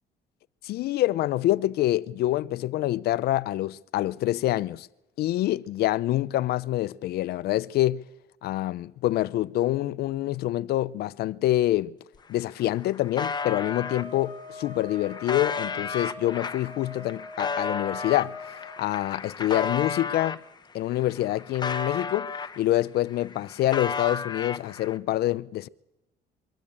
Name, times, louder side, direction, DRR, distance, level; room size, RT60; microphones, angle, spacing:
voice 1, 0.6-4.9 5.2-8.1 8.4-11.9 12.3-18.4 18.8-20.4 20.7-22.3 22.6-25.7, left 15 dB, 70° left, 0.6 m, -26 dB
sound 1, 12.1-12.2 12.5-14.0 14.7-20.4 20.9-22.8 23.1-25.0, left 5 dB, 25° left, 1.1 m, -33 dB
sound 2, 13.3-18.8, left 2 dB, 15° right, 7.0 m, -42 dB
23.0 x 13.5 x 8.7 m
cardioid pair, 110°, 17 cm